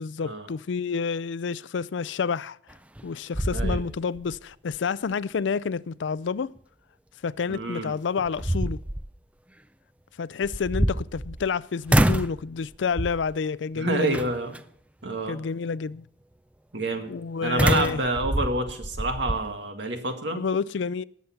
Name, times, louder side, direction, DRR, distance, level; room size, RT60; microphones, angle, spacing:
voice 1, 0.0-2.6 3.0-6.5 7.2-8.8 10.2-14.3 15.3-16.0 17.1-18.0 20.3-21.0, left 5 dB, 90° left, 0.4 m, -29 dB
sound 1, 2.7-3.1 3.3-4.4 4.7-4.8 7.5-7.6 8.2-9.1 10.4-11.5 11.9-12.4 13.0-13.3 14.1-14.6 17.6-19.4, right 1 dB, 5° right, 0.4 m, -26 dB
voice 2, 7.5-7.9 13.8-14.6 15.0-15.4 16.7-17.1 17.4-20.4, right 2 dB, 75° right, 1.9 m, -28 dB
19.0 x 7.1 x 5.8 m
head